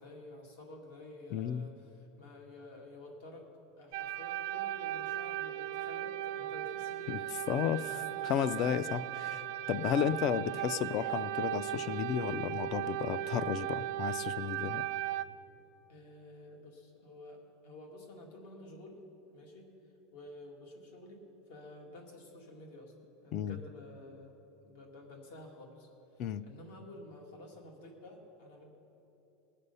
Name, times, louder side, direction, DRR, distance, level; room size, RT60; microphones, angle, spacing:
voice 1, 0.0-3.5 3.8-7.2 7.6-8.6 10.0-10.2 15.9-19.0 19.3-19.7 20.1-22.9 23.2-24.3 24.7-28.7, left 1 dB, 75° left, 1 dB, 2.2 m, -51 dB
voice 2, 1.3-1.7 7.1-7.2 7.5-7.8 8.3-9.4 9.7-14.8 23.3-23.6 26.2-26.4, left 9 dB, 35° left, 16 dB, 0.3 m, -33 dB
sound 1, 3.9-15.2, right 14 dB, 55° right, 0.3 m, -37 dB
19.5 x 6.7 x 5.5 m, 2.9 s
supercardioid pair, 175°, 0 cm